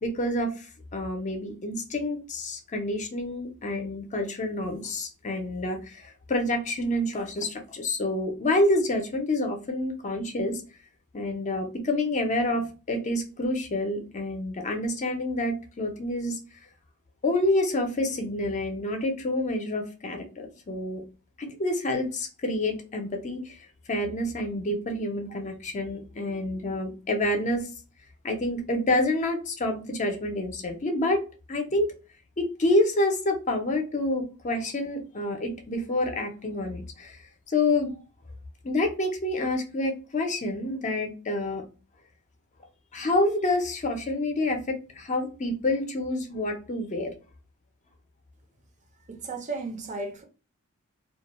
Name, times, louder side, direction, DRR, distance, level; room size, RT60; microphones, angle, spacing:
voice 1, 0.0-10.6 11.1-16.4 17.2-21.0 21.4-27.7 28.2-31.2 31.5-31.9 32.4-37.2 37.5-38.0 38.6-41.6 42.9-47.1, left 1 dB, 35° left, 0.5 m, -28 dB
voice 2, 49.1-50.2, right 3 dB, 35° right, 0.5 m, -34 dB
2.3 x 2.2 x 2.9 m
head